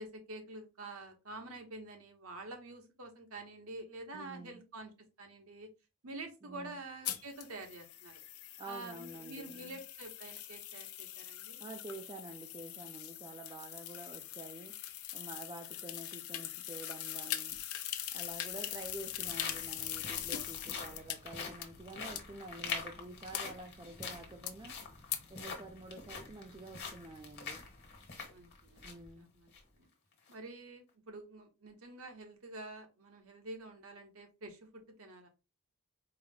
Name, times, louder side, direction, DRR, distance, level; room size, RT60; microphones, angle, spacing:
voice 1, 0.0-4.9 5.2-5.7 6.0-8.2 8.6-11.6 28.3-29.9 30.3-35.3, right 2 dB, 75° right, 1.0 m, -48 dB
voice 2, 4.1-4.6 6.4-6.7 8.6-9.7 11.6-14.8 15.1-17.6 18.1-24.7 25.3-27.6 28.8-29.3, right 2 dB, 20° right, 0.4 m, -48 dB
sound 1, 7.0-21.2 21.6-21.7 22.2-22.3 22.7-22.8 23.3-23.4 24.0-24.1 24.5-24.6 25.1-25.2, left 12 dB, 75° left, 0.5 m, -42 dB
sound 2, 17.5-17.6 18.5-29.1 29.5-29.6 30.1-30.3, left 4 dB, 50° left, 1.3 m, -45 dB
4.6 x 2.1 x 3.6 m
head